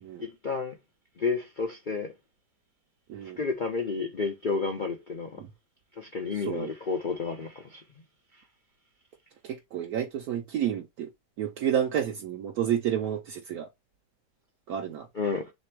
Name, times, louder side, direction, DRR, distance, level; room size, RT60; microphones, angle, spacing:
voice 1, 0.2-0.7 1.2-2.1 3.4-5.4 6.0-7.8 15.1-15.5, left 4 dB, 70° left, 0.4 m, -31 dB
voice 2, 3.1-3.4 5.4-5.5 6.3-6.7 9.4-11.1 11.4-13.7 14.7-15.1, right 9 dB, 70° right, 1.1 m, -30 dB
3.4 x 3.1 x 4.5 m
omnidirectional pair, 1.8 m